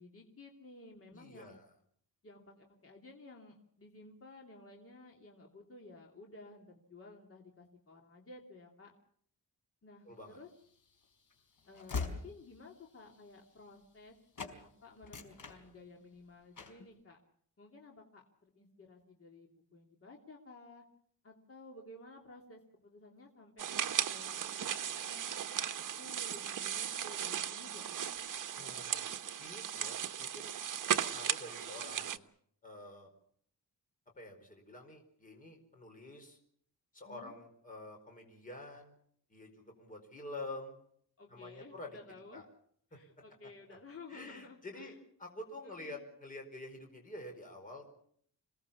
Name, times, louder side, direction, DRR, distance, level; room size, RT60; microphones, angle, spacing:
voice 1, 0.0-1.6 2.2-8.9 9.8-10.5 11.7-14.1 14.6-17.2 17.6-20.8 21.2-25.3 25.8-28.0 28.4-28.9 37.0-37.4 41.2-42.5 42.9-45.0 45.6-46.1, left 2 dB, 40° left, 0 dB, 2.9 m, -54 dB
voice 2, 1.1-1.7 10.0-10.4 28.5-29.1 29.4-30.5 30.9-32.3 32.6-33.1 34.2-36.4 36.9-38.9 39.3-40.7 41.3-42.0 42.3-42.4 42.9-43.0 43.4-43.8 44.1-47.8, left 2 dB, 25° left, 3 dB, 4.7 m, -48 dB
Train / Slam, 10.5-14.1 14.4-14.6 15.0-16.2 16.6-16.9, left 4 dB, 60° left, 4.5 m, -43 dB
sound 1, 23.6-32.2, right 9 dB, 60° right, 1.2 m, -37 dB
27.5 x 18.5 x 7.1 m, 0.65 s
wide cardioid pair, 165°, 35 cm